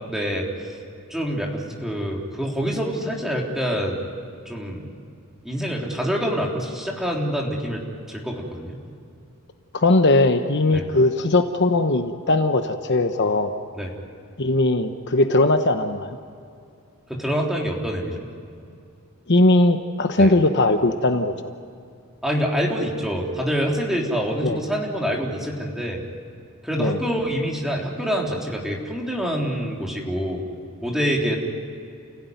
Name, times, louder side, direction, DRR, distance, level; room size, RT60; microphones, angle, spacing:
voice 1, 0.1-0.5 1.1-4.0 4.5-4.9 5.4-8.8 10.7-10.8 13.7-13.9 17.1-18.2 20.2-20.3 22.2-26.0 26.6-30.4 30.8-31.4, equal, ahead, -1 dB, 3.5 m, -26 dB
voice 2, 9.7-13.5 14.4-16.2 19.3-21.3 24.4-24.6 26.8-27.0, left 2 dB, 50° left, 7 dB, 1.1 m, -19 dB
29.5 x 16.5 x 9.4 m, 2.5 s
head